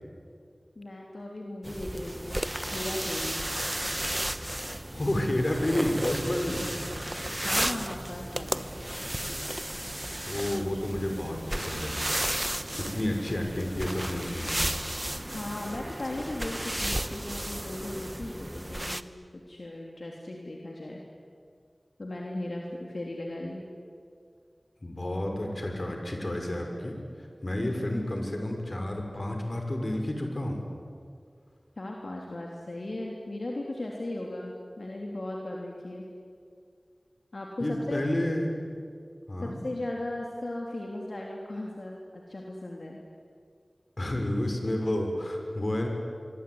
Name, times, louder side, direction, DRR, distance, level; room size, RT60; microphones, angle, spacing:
voice 1, 0.8-2.4 2.7-3.4 7.4-8.7 15.3-21.0 22.0-23.6 31.8-36.1 37.3-38.0 39.4-43.0, left 1 dB, 70° left, -1 dB, 3.5 m, -37 dB
sound 1, 1.6-19.0, right 1 dB, 20° right, 1.1 m, -33 dB
voice 2, 4.9-6.6 10.3-12.0 12.7-14.6 24.8-30.6 37.6-38.5 39.3-39.6 44.0-45.9, left 1 dB, 50° left, 3 dB, 5.9 m, -30 dB
25.0 x 24.5 x 9.7 m, 2.2 s
wide cardioid pair, 45°, 0 cm